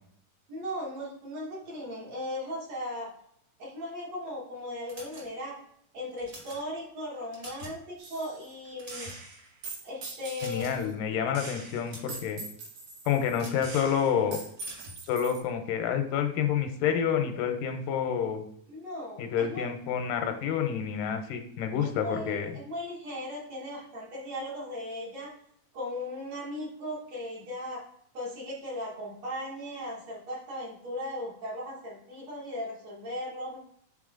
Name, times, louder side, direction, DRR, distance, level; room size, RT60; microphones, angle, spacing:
voice 1, 0.5-3.1 3.6-5.6 5.9-9.1 9.8-10.7 18.7-19.7 21.8-25.3 25.7-27.8 28.1-33.6, left 1 dB, 55° right, -5 dB, 3.0 m, -37 dB
sound 1, 4.9-5.6 6.1-6.6 7.1-7.8 8.1-8.3 8.7-9.4 10.4-10.9 11.7-12.2 13.3-13.8 14.6-15.0, right 1 dB, 35° right, 1.9 m, -46 dB
Gunshot gunfire, 8.0-8.5 8.9-10.9 11.3-15.4, right 3 dB, 85° right, 3.3 m, -43 dB
voice 2, 10.4-12.4 13.1-14.4 15.1-18.4 19.2-22.6, left 8 dB, 90° left, 6 dB, 2.4 m, -28 dB
8.1 x 3.7 x 3.8 m, 0.70 s
omnidirectional pair, 3.9 m